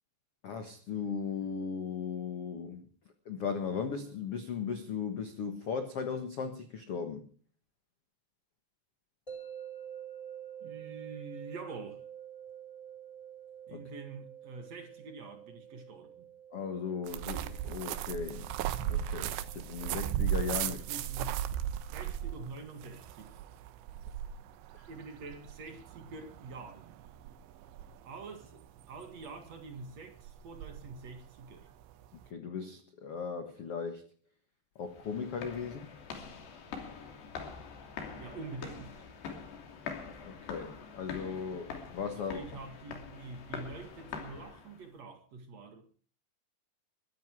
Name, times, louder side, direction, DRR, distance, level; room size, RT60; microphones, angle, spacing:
voice 1, 0.4-2.8 3.2-7.3 13.7-13.8 16.5-18.5 18.9-20.8 24.7-24.8 32.3-34.0 34.7-35.8 40.2-42.4, left 6 dB, 90° left, 1.2 m, -37 dB
sound 1, 9.3-22.3, right 9 dB, 10° left, 2.7 m, -49 dB
voice 2, 10.6-12.0 13.7-16.3 20.6-21.4 21.9-23.3 24.9-26.9 28.0-31.7 38.2-39.0 42.1-46.0, right 3 dB, 50° right, 2.5 m, -46 dB
sound 2, 17.1-32.3, right 11 dB, 80° right, 3.2 m, -37 dB
sound 3, 34.8-44.9, left 6 dB, 70° left, 4.9 m, -44 dB
22.0 x 13.0 x 4.7 m
omnidirectional pair, 5.1 m